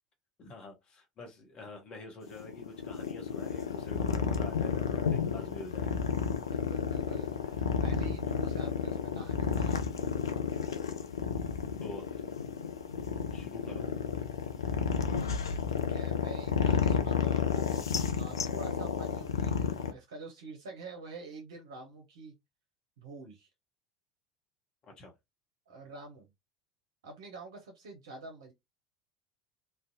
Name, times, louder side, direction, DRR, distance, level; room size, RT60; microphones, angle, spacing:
voice 1, 0.4-6.1 11.8-12.1 13.3-13.9 25.0-25.1, left 2 dB, 35° left, 0.8 m, -46 dB
sound 1, 2.2-19.9, left 6 dB, 75° left, 0.3 m, -31 dB
voice 2, 6.4-9.8 15.1-15.4 15.7-22.3 23.0-23.5 25.7-26.3 27.0-28.5, right 3 dB, 65° right, 0.5 m, -47 dB
2.5 x 2.1 x 2.6 m
figure-of-eight pair, 70°, 2 cm